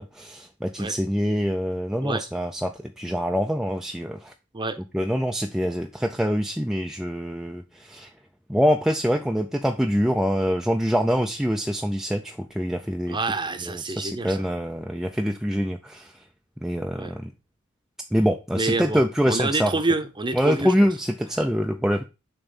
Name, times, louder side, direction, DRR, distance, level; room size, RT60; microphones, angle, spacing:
voice 1, 0.0-4.3 4.9-8.1 8.5-13.2 13.7-16.2 16.6-17.3 18.1-19.7 20.3-22.0, equal, ahead, 0.3 m, -25 dB
voice 2, 13.1-14.4 16.9-17.1 18.5-19.0 19.2-20.7, right 3 dB, 20° right, 0.7 m, -27 dB
6.8 x 3.0 x 5.4 m
head